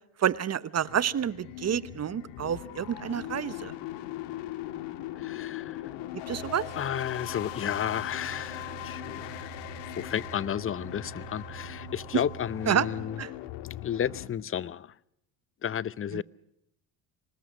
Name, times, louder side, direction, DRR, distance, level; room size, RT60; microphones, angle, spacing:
voice 1, 0.2-3.7 6.3-6.7 12.7-12.9 13.2-13.3 16.1-16.2, right 9 dB, 35° right, 1.1 m, -29 dB
sound 1, 0.7-14.3, left 14 dB, 70° left, 1.9 m, -40 dB
voice 2, 5.2-5.8 6.8-9.5 10.0-13.2 13.6-14.9 15.6-16.2, left 9 dB, 30° left, 0.7 m, -32 dB
sound 2, 6.3-13.1, right 13 dB, 80° right, 4.4 m, -46 dB
25.5 x 19.5 x 6.2 m
supercardioid pair, 75°, 43 cm